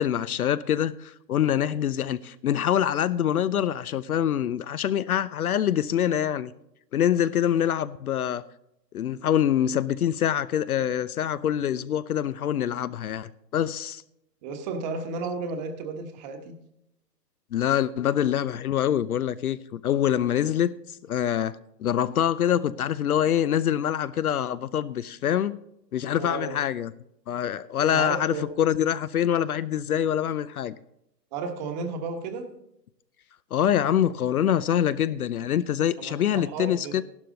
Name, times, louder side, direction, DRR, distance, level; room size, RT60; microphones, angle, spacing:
voice 1, 0.0-6.5 6.9-8.4 8.9-14.0 17.5-20.8 21.1-25.6 25.9-26.9 27.3-30.8 33.5-37.0, left 10 dB, 60° left, 0.6 m, -25 dB
voice 2, 14.4-16.5 26.1-26.5 27.9-28.5 31.3-32.5 36.0-37.0, right 4 dB, 25° right, 1.3 m, -33 dB
13.5 x 12.0 x 3.9 m
hypercardioid pair, 145°, 50 cm